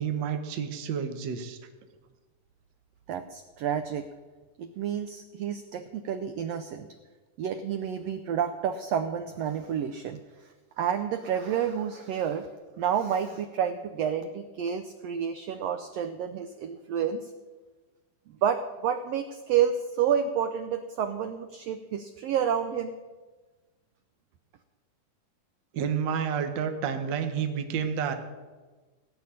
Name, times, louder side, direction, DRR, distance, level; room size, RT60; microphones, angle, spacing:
voice 1, 0.0-1.6 25.7-28.1, right 7 dB, 60° right, 7 dB, 1.2 m, -30 dB
voice 2, 3.1-4.0 4.6-6.9 7.4-10.2 10.8-12.5 12.8-17.3 18.4-22.9, right 8 dB, 80° right, 9 dB, 1.4 m, -29 dB
17.0 x 6.0 x 10.0 m, 1.3 s
omnidirectional pair, 3.7 m